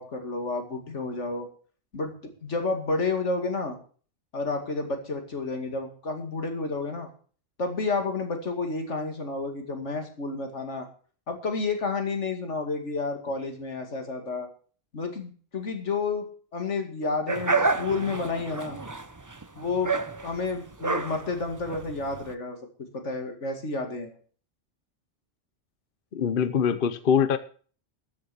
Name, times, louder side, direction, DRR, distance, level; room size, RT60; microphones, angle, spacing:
voice 1, 0.0-1.5 1.9-2.1 2.4-3.8 4.3-7.1 7.6-10.9 11.3-14.5 14.9-18.8 19.6-19.9 20.2-22.6 22.9-24.2, left 3 dB, 90° left, 5 dB, 2.6 m, -30 dB
sound 1, 17.3-22.3, right 3 dB, 20° right, 0.6 m, -29 dB
voice 2, 26.1-27.4, left 7 dB, 55° left, 12 dB, 0.9 m, -23 dB
14.0 x 7.3 x 6.9 m, 0.42 s
omnidirectional pair, 1.2 m